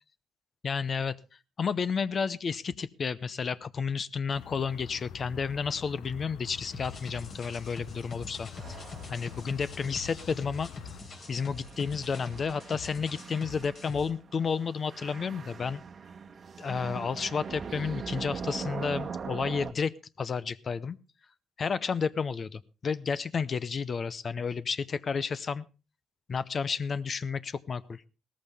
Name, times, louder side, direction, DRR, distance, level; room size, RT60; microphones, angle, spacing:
voice 1, 0.6-1.2 1.6-8.8 9.1-10.7 11.3-15.8 16.6-19.9 20.2-21.0 21.6-25.6 26.3-28.0, left 5 dB, 45° left, 16 dB, 0.6 m, -31 dB
sound 1, 4.3-11.0, left 10 dB, 85° left, 0.7 m, -47 dB
sound 2, 6.7-14.1, left 4 dB, 60° left, 3.9 m, -44 dB
sound 3, 8.5-19.7, right 6 dB, 45° right, 1.1 m, -42 dB
17.0 x 14.0 x 3.5 m, 0.31 s
cardioid pair, 90°, 0 cm